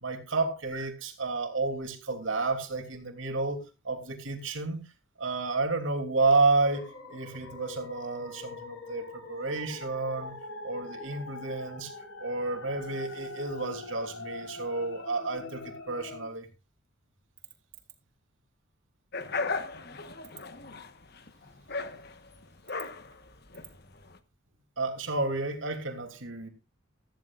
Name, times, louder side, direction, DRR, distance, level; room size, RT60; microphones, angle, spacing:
voice 1, 0.0-3.6 3.8-4.8 5.2-10.3 10.6-11.9 12.2-16.5 24.8-26.5, right 3 dB, 70° right, 3.0 m, -30 dB
sound 1, 6.6-16.3, left 3 dB, 90° left, 4.6 m, -43 dB
sound 2, 19.1-24.2, left 4 dB, 50° left, 1.2 m, -37 dB
14.5 x 14.5 x 2.5 m
head